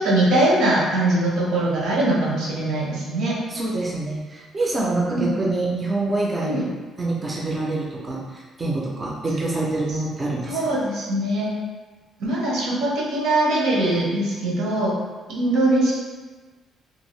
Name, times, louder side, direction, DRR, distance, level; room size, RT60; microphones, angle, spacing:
voice 1, 0.0-3.4 5.1-5.3 6.4-6.6 10.4-11.5 12.2-15.0 15.3-15.9, right 1 dB, 80° right, -4 dB, 0.9 m, -21 dB
voice 2, 3.5-6.7 7.0-10.8, right 2 dB, 15° right, -4 dB, 0.4 m, -26 dB
2.6 x 2.5 x 3.0 m, 1.3 s
cardioid pair, 175°, 0 cm